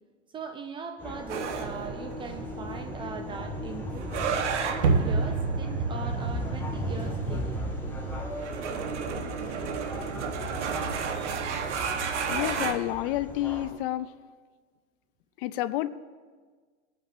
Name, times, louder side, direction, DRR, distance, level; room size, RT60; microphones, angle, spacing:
voice 1, 0.3-4.2 5.0-7.6, right 5 dB, 15° right, 6 dB, 0.3 m, -40 dB
sound 1, 1.0-13.7, left 1 dB, 5° left, 1.6 m, -36 dB
sound 2, 1.3-12.7, right 5 dB, 90° right, 1.1 m, -31 dB
voice 2, 12.3-14.1 15.4-15.9, left 15 dB, 55° left, 15 dB, 0.5 m, -29 dB
21.0 x 8.8 x 2.5 m, 1.5 s
supercardioid pair, 140°, 34 cm